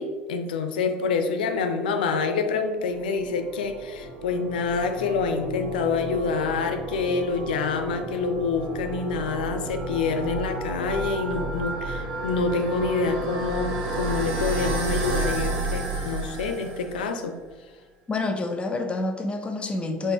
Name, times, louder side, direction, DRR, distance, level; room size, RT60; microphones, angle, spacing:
voice 1, 0.0-17.3, left 4 dB, 75° left, 7 dB, 0.5 m, -27 dB
sound 1, 3.0-17.2, right 2 dB, 65° right, 1.0 m, -31 dB
voice 2, 18.1-20.1, left 3 dB, 25° left, 5 dB, 0.7 m, -28 dB
4.5 x 2.6 x 4.3 m, 1.3 s
hypercardioid pair, 65°, 5 cm